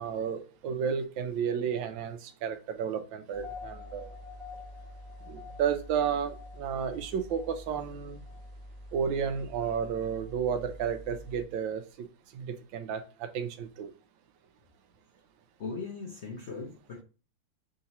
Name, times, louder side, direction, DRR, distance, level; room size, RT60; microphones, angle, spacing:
voice 1, 0.0-4.1 5.3-8.2 8.9-12.1 12.3-13.9, right 7 dB, 85° right, 8 dB, 1.3 m, -32 dB
sound 1, 3.3-11.4, left 2 dB, 20° left, 0.9 m, -46 dB
voice 2, 15.6-17.0, left 4 dB, 65° left, -1 dB, 0.6 m, -39 dB
3.8 x 2.9 x 4.0 m, 0.34 s
omnidirectional pair, 2.1 m